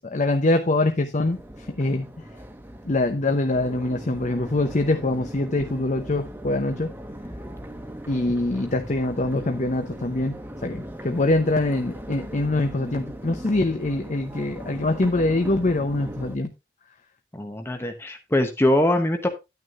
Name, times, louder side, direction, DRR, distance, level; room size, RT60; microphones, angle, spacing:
voice 1, 0.0-2.1 2.9-6.9 8.1-10.4 10.6-16.5, left 2 dB, 45° left, 0.8 m, -24 dB
Crowd, 1.2-16.3, equal, 10° right, 1.1 m, -39 dB
voice 2, 17.3-19.3, left 1 dB, 15° left, 0.9 m, -22 dB
10.5 x 9.4 x 2.5 m
head